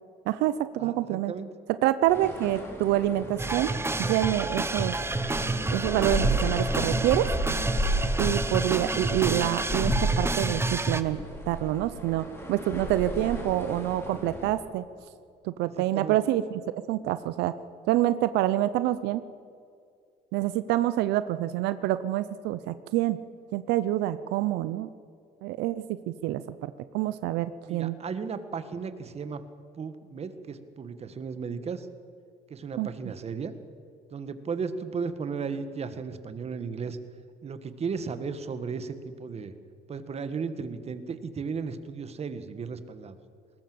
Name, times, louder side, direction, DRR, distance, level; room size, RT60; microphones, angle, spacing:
voice 1, 0.3-1.3 1.8-3.7 4.0-5.0 5.7-7.3 8.2-11.2 11.5-14.9 15.4-17.5 17.9-19.2 20.3-23.2 23.5-24.9 25.4-25.8 26.2-28.0 32.8-32.9, right 14 dB, 90° right, 14 dB, 0.7 m, -27 dB
voice 2, 0.8-1.5 8.1-8.3 15.8-16.2 27.7-29.4 29.7-31.9 32.5-33.5 34.1-37.0 37.4-39.5 39.9-43.2, right 5 dB, 40° right, 11 dB, 1.6 m, -35 dB
sound 1, 2.1-14.5, equal, 15° left, 4.6 m, -33 dB
sound 2, 3.4-11.0, right 2 dB, 15° right, 1.1 m, -29 dB
20.5 x 19.0 x 7.8 m, 2.3 s
cardioid pair, 110°, 17 cm